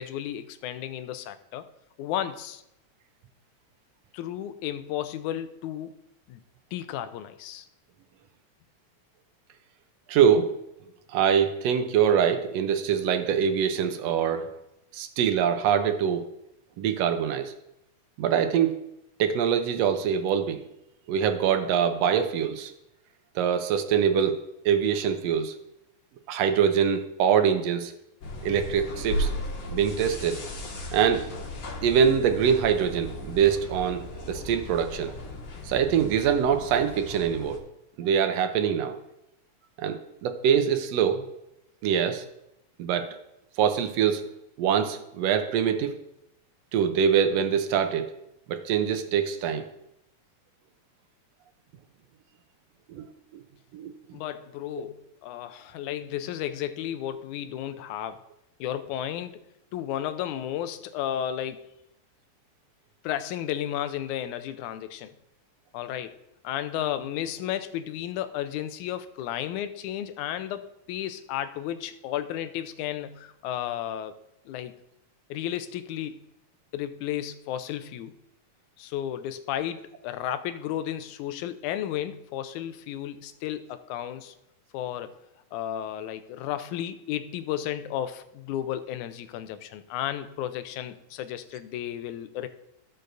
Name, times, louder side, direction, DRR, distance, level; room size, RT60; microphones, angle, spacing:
voice 1, 0.0-1.7 2.0-2.6 4.1-6.0 6.3-6.4 6.7-7.7 54.1-58.2 58.6-59.4 59.7-61.7 63.0-65.2 65.7-66.1 66.4-74.2 74.5-74.7 75.3-76.3 76.7-78.1 78.8-84.3 84.7-85.1 85.5-92.5, left 11 dB, 85° left, 11 dB, 2.1 m, -33 dB
voice 2, 10.1-10.6 11.1-14.5 14.9-16.3 16.8-17.5 18.2-18.7 19.2-20.6 21.1-22.7 23.3-25.6 26.3-27.9 28.4-29.3 29.7-30.4 30.9-31.3 31.8-35.1 35.7-37.6 38.0-39.0 39.8-41.3 41.8-42.2 42.8-43.2 43.6-44.3 44.6-46.0 46.7-48.1 48.5-49.6 52.9-53.1 53.7-53.9, right 8 dB, 75° right, 9 dB, 1.6 m, -24 dB
sound 1, 28.2-37.6, left 1 dB, 50° left, 2.3 m, -36 dB
17.0 x 6.7 x 2.6 m, 0.85 s
omnidirectional pair, 3.4 m